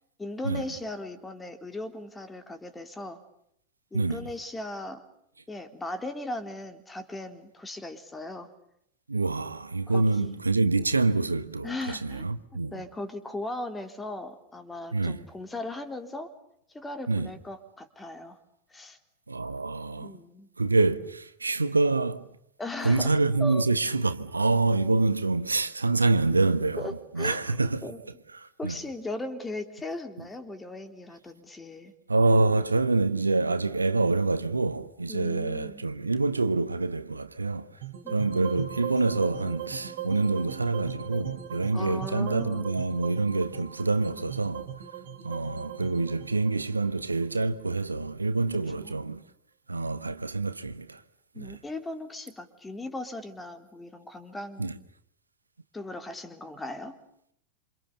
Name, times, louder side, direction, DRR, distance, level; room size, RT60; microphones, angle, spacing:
voice 1, 0.2-3.2 3.9-5.0 5.5-8.5 9.9-10.4 11.6-12.3 12.7-16.3 16.7-18.4 18.7-19.0 20.0-20.5 22.6-23.1 23.4-23.6 26.8-27.5 27.8-28.0 28.6-31.9 35.1-35.9 41.7-42.7 48.8-49.0 51.3-54.8 55.7-57.0, left 2 dB, 10° left, 3.7 m, -38 dB
voice 2, 3.9-4.3 9.1-12.7 14.9-15.2 17.1-17.3 19.3-20.2 20.6-22.2 22.8-27.9 28.3-28.7 32.1-37.8 38.1-44.7 45.2-49.2 49.7-51.0 51.4-51.6 54.6-54.8, right 3 dB, 80° right, 1.3 m, -26 dB
sound 1, 37.8-48.0, right 8 dB, 50° right, 4.2 m, -39 dB
28.0 x 27.5 x 6.9 m
figure-of-eight pair, 90°, 0 cm